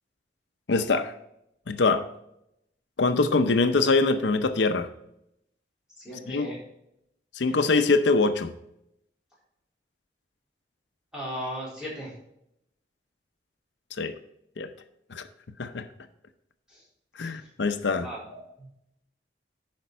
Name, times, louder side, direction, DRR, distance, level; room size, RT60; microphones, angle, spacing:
voice 1, 0.7-1.1 1.7-2.1 3.0-4.9 6.3-6.5 7.3-8.5 14.0-14.1 14.6-14.7 15.1-15.3 15.6-15.9 17.2-18.1, left 3 dB, 90° left, 9 dB, 0.6 m, -23 dB
voice 2, 6.0-6.6 7.5-7.6 11.1-12.1 16.7-16.8 17.2-17.5 17.9-18.7, equal, 5° right, -7 dB, 3.9 m, -37 dB
11.0 x 5.2 x 4.5 m, 0.79 s
head